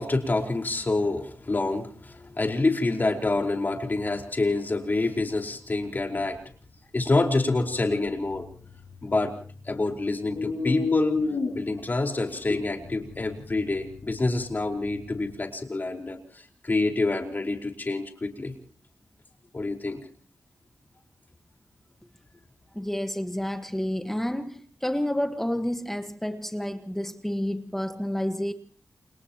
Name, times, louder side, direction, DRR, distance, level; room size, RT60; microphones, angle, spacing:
voice 1, 0.0-6.4 6.9-8.5 9.0-9.3 9.6-11.2 11.5-18.5 19.5-20.0, left 2 dB, 35° left, 3 dB, 4.8 m, -27 dB
sound 1, 8.0-9.8 10.1-15.4, left 4 dB, 85° left, 6.3 m, -34 dB
voice 2, 22.7-28.5, left 1 dB, 5° left, 7 dB, 1.5 m, -30 dB
29.5 x 29.0 x 3.0 m, 0.43 s
wide cardioid pair, 90°, 5 cm